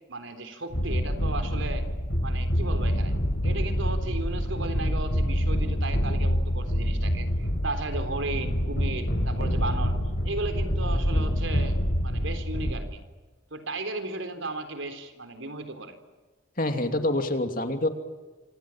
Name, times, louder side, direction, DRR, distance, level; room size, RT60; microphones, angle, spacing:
voice 1, 0.1-3.1 3.4-10.0 10.2-11.8 12.0-13.0 13.5-15.9, right 2 dB, 75° right, 8 dB, 3.9 m, -35 dB
sound 1, 0.7-12.8, equal, 60° left, 7.1 m, -26 dB
voice 2, 16.6-17.9, left 1 dB, 45° left, 6 dB, 2.8 m, -26 dB
27.0 x 27.0 x 7.5 m, 1.3 s
head